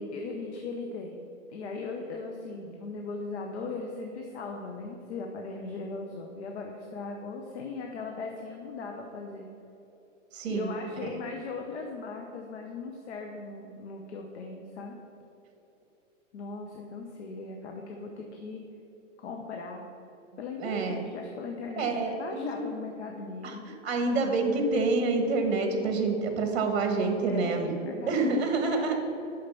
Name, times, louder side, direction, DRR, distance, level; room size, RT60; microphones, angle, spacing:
voice 1, 0.1-9.5 10.4-15.0 16.3-18.6 19.2-19.8 20.4-23.7 27.3-28.3 28.6-29.0, left 4 dB, 60° left, 2 dB, 1.0 m, -38 dB
voice 2, 10.3-10.7 20.6-21.0 21.8-22.7 23.4-27.7 28.1-29.0, right 3 dB, 55° right, 5 dB, 1.5 m, -27 dB
6.6 x 5.7 x 6.9 m, 3.0 s
hypercardioid pair, 160°, 38 cm